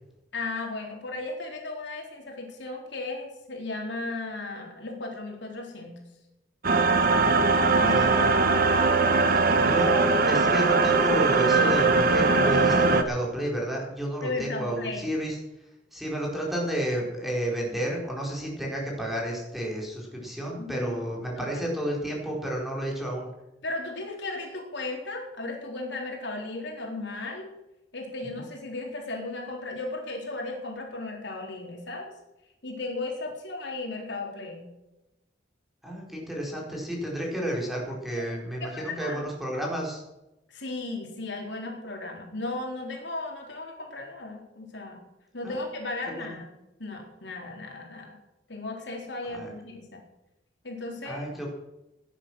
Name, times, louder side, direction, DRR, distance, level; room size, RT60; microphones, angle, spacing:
voice 1, 0.3-6.0 7.8-8.4 14.2-15.1 20.6-21.0 21.4-21.5 23.6-27.5 27.9-32.1 32.6-34.7 38.6-39.3 40.5-45.0 45.3-46.5 46.8-48.1 48.5-50.0 50.6-51.3, left 2 dB, 75° left, 1 dB, 3.9 m, -35 dB
sound 1, 6.6-13.0, right 3 dB, 55° right, 1.3 m, -21 dB
voice 2, 6.9-7.4 7.7-8.1 9.4-15.4 15.9-23.3 28.3-28.4 35.8-40.0 45.4-45.7 46.2-46.4 49.3-49.5 51.0-51.5, right 1 dB, ahead, -3 dB, 4.6 m, -31 dB
17.5 x 10.0 x 6.3 m, 0.95 s
head